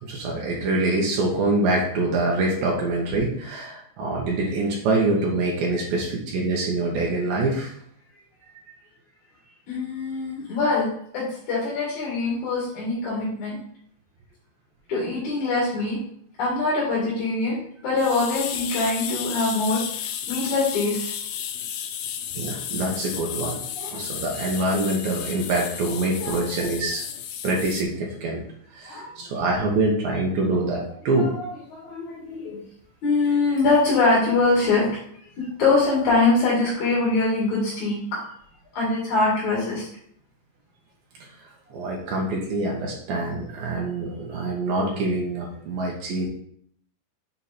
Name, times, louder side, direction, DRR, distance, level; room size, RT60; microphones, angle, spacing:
voice 1, 0.0-7.7 8.7-8.8 22.3-23.6 23.9-27.0 27.4-28.4 28.7-31.3 41.2-46.3, right 2 dB, 75° right, -2 dB, 2.1 m, -25 dB
voice 2, 9.7-13.6 14.9-16.0 16.4-21.1 23.7-24.0 26.2-26.6 28.8-29.1 31.2-31.4 31.7-32.6 33.0-34.9 35.4-38.0 38.7-39.9, left 3 dB, 50° left, -6 dB, 2.7 m, -23 dB
sound 1, 18.0-27.8, left 9 dB, 90° left, 2.3 m, -33 dB
7.1 x 4.6 x 4.2 m, 0.65 s
omnidirectional pair, 5.6 m